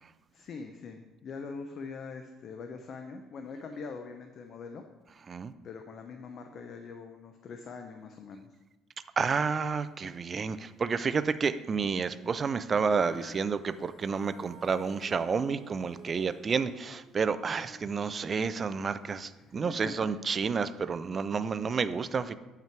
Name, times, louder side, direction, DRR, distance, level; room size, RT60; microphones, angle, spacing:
voice 1, 0.3-4.8 5.6-8.5 19.4-19.9, left 4 dB, 45° left, 5 dB, 0.6 m, -43 dB
voice 2, 9.2-22.3, right 5 dB, 30° right, 13 dB, 0.4 m, -30 dB
Female singing, 12.8-19.2 19.9-20.0, equal, 60° left, 2.1 m, -53 dB
8.8 x 5.7 x 4.6 m, 1.1 s
cardioid pair, 135°, 0 cm